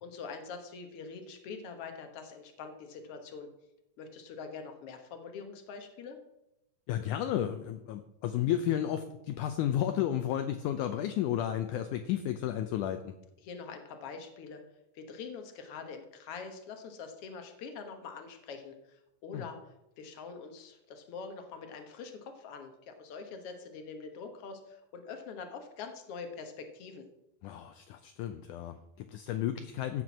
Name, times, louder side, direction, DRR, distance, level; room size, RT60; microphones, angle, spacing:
voice 1, 0.0-3.5 4.0-6.2 13.4-14.6 14.9-19.6 20.0-27.1, left 5 dB, 55° left, 5 dB, 1.8 m, -44 dB
voice 2, 6.9-13.1 19.3-19.4 27.4-30.0, left 11 dB, 75° left, 8 dB, 2.0 m, -32 dB
15.5 x 6.1 x 6.0 m, 0.90 s
omnidirectional pair, 3.9 m